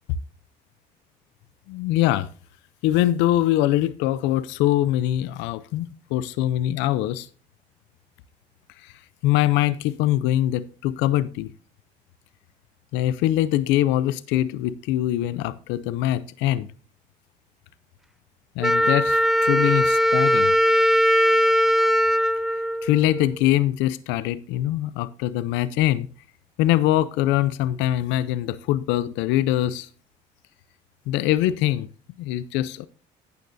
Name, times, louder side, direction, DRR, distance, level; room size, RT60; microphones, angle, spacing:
voice 1, 1.7-2.3 2.8-7.3 8.8-8.9 9.2-11.5 12.9-16.7 18.6-20.5 22.8-26.1 26.6-29.9 31.1-31.9 32.2-32.9, left 13 dB, 85° left, 0.6 m, -23 dB
Wind instrument woodwind instrument, 18.6-23.4, equal, ahead, 0.4 m, -20 dB
12.0 x 9.1 x 2.6 m
cardioid pair, 90°, 18 cm